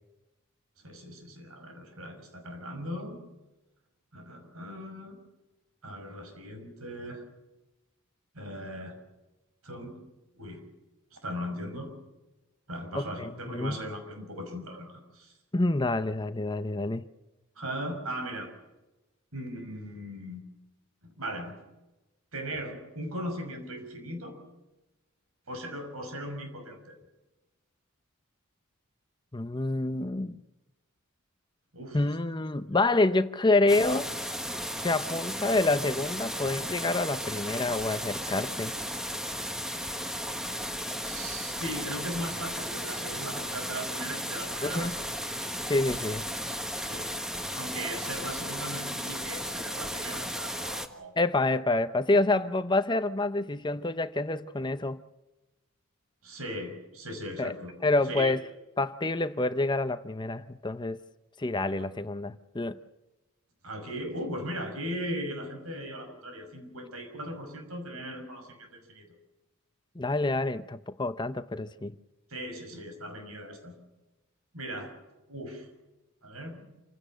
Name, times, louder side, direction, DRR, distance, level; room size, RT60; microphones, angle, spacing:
voice 1, 0.8-3.2 4.1-5.2 5.8-7.2 8.3-9.0 9.6-10.0 10.4-10.6 11.1-11.9 12.7-15.3 17.6-18.5 19.3-20.4 21.0-21.6 22.3-24.4 25.5-27.0 31.7-32.0 32.7-32.8 41.0-45.1 46.8-47.1 47.5-51.1 56.2-57.7 58.1-58.4 63.6-69.1 72.3-73.7 74.5-74.9 75.3-75.7 76.2-76.7, equal, 75° right, 6.0 m, -38 dB
voice 2, 12.9-13.8 15.5-17.1 29.3-30.4 31.9-34.1 34.8-38.7 44.6-44.9 45.7-46.2 51.2-55.0 57.4-57.5 57.8-58.4 58.8-61.0 61.4-62.8 70.0-71.9, left 2 dB, 20° left, 0.7 m, -27 dB
sound 1, 33.7-50.9, equal, 5° right, 1.4 m, -35 dB
27.5 x 16.5 x 6.5 m
head